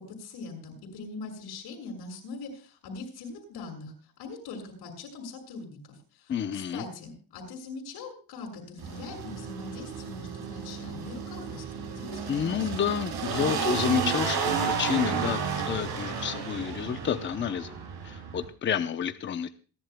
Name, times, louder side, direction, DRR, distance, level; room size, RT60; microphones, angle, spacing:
voice 1, 0.0-3.9 4.2-12.7, left 3 dB, 90° left, 2 dB, 6.5 m, -42 dB
voice 2, 6.3-6.8 12.3-17.7 18.0-19.5, left 8 dB, 30° left, 9 dB, 0.7 m, -29 dB
sound 1, 8.8-18.4, right 6 dB, 75° right, 6.8 m, -32 dB
27.5 x 11.5 x 2.2 m, 0.36 s
cardioid pair, 165°, 38 cm